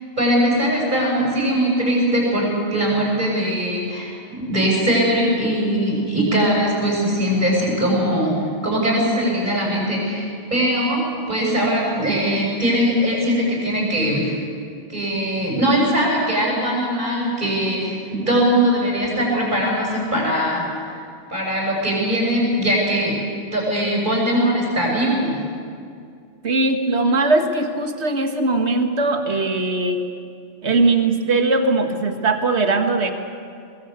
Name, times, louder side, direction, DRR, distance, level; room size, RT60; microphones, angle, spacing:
voice 1, 0.2-11.0 11.3-14.3 14.9-21.0 21.3-23.2 23.5-25.4, equal, 40° right, -2 dB, 7.5 m, -21 dB
voice 2, 26.4-30.0 30.6-33.1, right 3 dB, 65° right, 6 dB, 2.0 m, -20 dB
22.5 x 22.5 x 8.2 m, 2.3 s
omnidirectional pair, 1.2 m